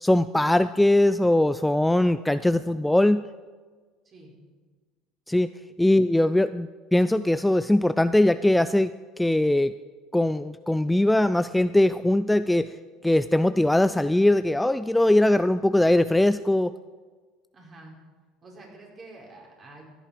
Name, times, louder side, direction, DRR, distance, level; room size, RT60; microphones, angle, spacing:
voice 1, 0.0-3.2 5.3-5.5 5.8-9.7 10.1-12.7 13.0-16.7, left 1 dB, 5° left, 13 dB, 0.3 m, -21 dB
voice 2, 17.5-18.0 18.4-19.8, right 2 dB, 35° right, -2 dB, 4.8 m, -47 dB
15.5 x 10.5 x 5.1 m, 1.4 s
supercardioid pair, 90°, 0 cm